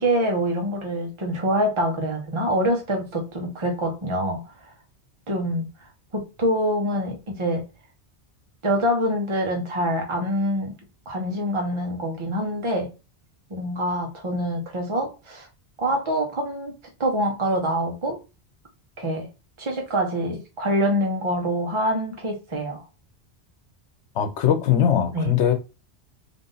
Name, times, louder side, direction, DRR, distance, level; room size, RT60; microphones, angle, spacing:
voice 1, 0.0-4.4 5.3-5.7 6.1-7.6 8.6-10.8 11.1-12.9 13.5-15.5 15.8-16.7 17.0-18.2 19.0-19.3 19.6-22.8 25.1-25.3, equal, 30° right, 0.9 m, -25 dB
voice 2, 24.1-25.5, left 9 dB, 90° left, 1.0 m, -20 dB
3.6 x 2.6 x 3.9 m
omnidirectional pair, 1.1 m